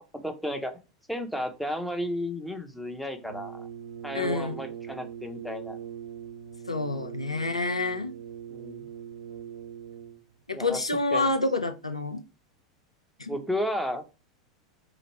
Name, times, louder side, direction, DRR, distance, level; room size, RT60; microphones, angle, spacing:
voice 1, 0.1-0.8 1.1-3.7 4.0-5.8 8.5-8.9 10.5-10.8 11.1-11.3 13.3-14.0, equal, ahead, 0.6 m, -33 dB
Brass instrument, 3.2-10.3, right 9 dB, 80° right, 0.9 m, -41 dB
voice 2, 4.1-4.6 6.7-8.1 10.5-12.2 13.2-13.4, left 3 dB, 85° left, 0.4 m, -28 dB
2.9 x 2.5 x 4.2 m
figure-of-eight pair, 85°, 3 cm